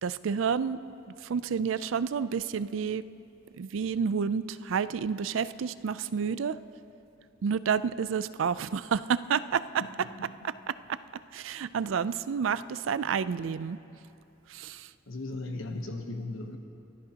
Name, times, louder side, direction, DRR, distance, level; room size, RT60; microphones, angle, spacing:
voice 1, 0.0-0.8 1.2-3.0 3.6-6.6 7.4-9.6 10.9-11.0 11.3-13.8 14.5-14.9, right 6 dB, 75° right, 15 dB, 0.4 m, -29 dB
voice 2, 10.0-10.3 15.1-16.6, left 2 dB, 85° left, 4 dB, 1.0 m, -37 dB
30.0 x 13.5 x 2.9 m, 2.8 s
head